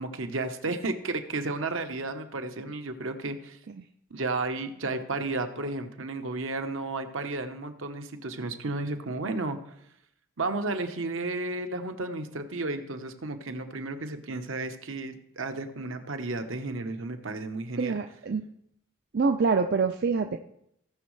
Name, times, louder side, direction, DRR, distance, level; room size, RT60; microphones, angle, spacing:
voice 1, 0.0-3.6 4.1-9.6 10.4-18.0, right 2 dB, 70° right, 7 dB, 1.0 m, -33 dB
voice 2, 17.8-18.4 19.1-20.4, right 4 dB, 50° right, 5 dB, 0.5 m, -26 dB
18.0 x 6.3 x 3.2 m, 0.76 s
head